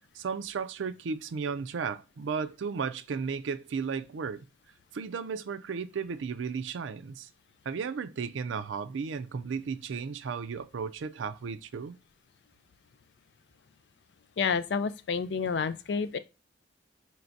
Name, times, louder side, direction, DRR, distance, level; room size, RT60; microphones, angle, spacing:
voice 1, 0.1-4.5 4.9-7.3 7.7-12.0, right 5 dB, 85° right, 0.4 m, -34 dB
voice 2, 14.4-16.2, left 5 dB, 65° left, 0.4 m, -29 dB
4.5 x 3.2 x 2.6 m
head